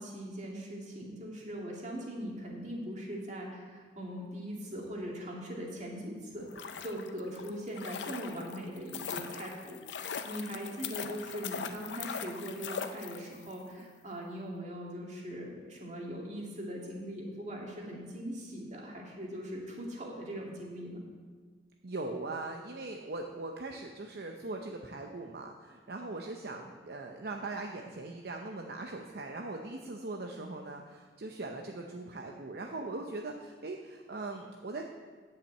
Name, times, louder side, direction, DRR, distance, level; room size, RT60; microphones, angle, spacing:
voice 1, 0.0-21.0, equal, 40° right, -2 dB, 2.2 m, -41 dB
sound 1, 6.4-13.5 13.8-13.9, left 6 dB, 85° left, 0.6 m, -41 dB
voice 2, 21.8-34.8, right 2 dB, 60° right, 2 dB, 0.7 m, -40 dB
10.0 x 5.8 x 7.7 m, 1.5 s
head